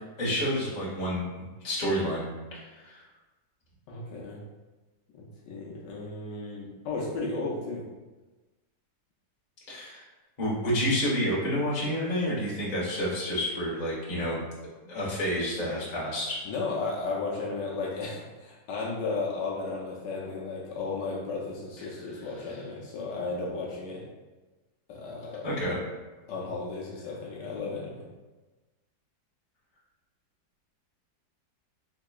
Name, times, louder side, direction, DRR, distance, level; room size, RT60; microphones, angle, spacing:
voice 1, 0.2-3.0 9.7-10.0 10.4-14.4 14.8-16.4 21.8-21.9 25.4-25.8, equal, 30° left, -7 dB, 0.9 m, -29 dB
voice 2, 3.9-4.4 5.1-7.9 16.4-24.1 24.9-25.5 26.3-28.1, left 3 dB, 75° left, -3 dB, 1.2 m, -34 dB
4.3 x 2.8 x 2.3 m, 1.2 s
omnidirectional pair, 1.9 m